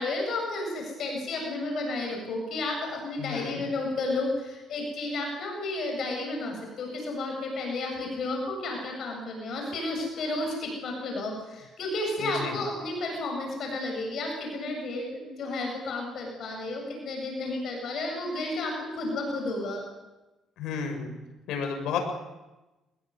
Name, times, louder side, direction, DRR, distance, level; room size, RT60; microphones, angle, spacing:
voice 1, 0.0-19.8, left 2 dB, 55° left, 2 dB, 7.7 m, -32 dB
voice 2, 3.2-3.6 12.2-12.6 20.6-21.1 21.5-22.0, left 6 dB, 85° left, 4 dB, 7.1 m, -32 dB
24.0 x 20.5 x 9.6 m, 1.1 s
cardioid pair, 145°, 0 cm